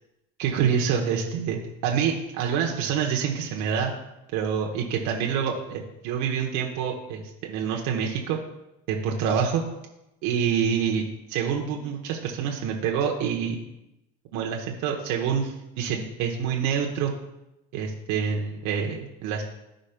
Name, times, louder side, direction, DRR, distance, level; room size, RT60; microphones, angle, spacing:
voice 1, 0.4-3.9 4.3-8.4 8.9-9.6 10.2-13.6 14.3-17.1 17.7-19.4, right 7 dB, 65° right, 0 dB, 1.1 m, -27 dB
14.0 x 5.1 x 2.2 m, 0.90 s
hypercardioid pair, 70°, 32 cm